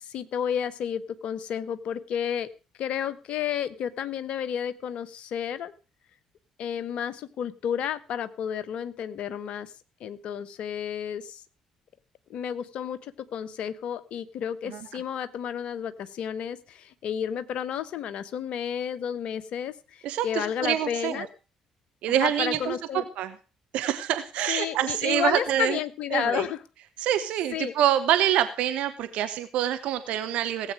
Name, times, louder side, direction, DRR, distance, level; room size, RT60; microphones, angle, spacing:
voice 1, 0.0-2.5 2.8-5.7 6.6-9.7 10.0-11.4 12.3-21.3 22.1-23.0 24.5-26.6 27.5-27.7, left 9 dB, 55° left, 14 dB, 1.0 m, -31 dB
voice 2, 20.0-21.3 22.0-23.3 23.7-25.8 26.1-26.5 27.0-30.7, right 11 dB, 60° right, 10 dB, 0.9 m, -26 dB
17.5 x 8.4 x 4.9 m, 0.34 s
figure-of-eight pair, 50°, 2 cm